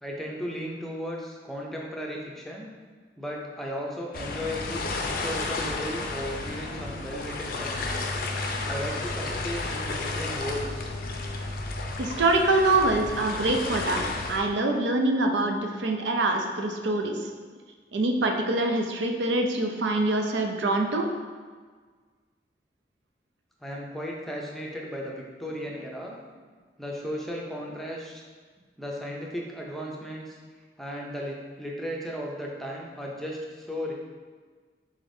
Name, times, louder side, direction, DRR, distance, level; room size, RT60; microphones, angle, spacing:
voice 1, 0.0-2.7 3.2-8.1 8.7-11.0 23.6-26.2 26.8-28.2 28.8-30.4 30.8-33.9, equal, ahead, -2 dB, 0.5 m, -35 dB
sound 1, 4.1-14.4, left 3 dB, 55° left, 0.4 m, -32 dB
voice 2, 12.0-14.0 14.3-17.3 17.9-21.1, right 2 dB, 90° right, 3 dB, 0.5 m, -25 dB
5.0 x 3.8 x 2.6 m, 1.5 s
head